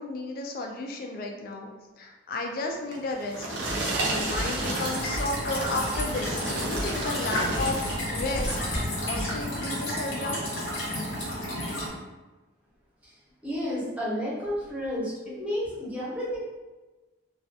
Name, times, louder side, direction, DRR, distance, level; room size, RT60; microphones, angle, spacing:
voice 1, 0.0-1.7 2.0-3.5 4.0-7.8 8.1-10.4, left 2 dB, 50° left, 2 dB, 0.3 m, -33 dB
sound 1, 2.9-8.0 8.4-8.8 9.4-9.5, right 2 dB, 60° right, 0.5 m, -32 dB
sound 2, 3.7-9.6, equal, 25° left, 0.8 m, -36 dB
sound 3, 4.6-11.9, equal, 75° left, 0.8 m, -32 dB
voice 2, 13.4-16.4, equal, 5° right, -9 dB, 0.7 m, -31 dB
2.3 x 2.2 x 2.6 m, 1.2 s
head